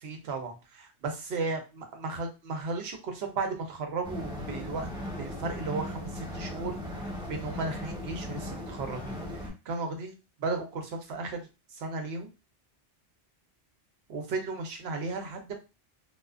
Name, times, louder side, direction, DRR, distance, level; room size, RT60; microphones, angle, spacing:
voice 1, 0.0-4.9 5.2-10.1 10.4-12.3 14.1-15.6, right 3 dB, 65° right, 4 dB, 0.9 m, -35 dB
sound 1, 4.0-9.5, left 1 dB, 5° right, 0.7 m, -38 dB
2.3 x 2.3 x 2.3 m, 0.28 s
omnidirectional pair, 1.2 m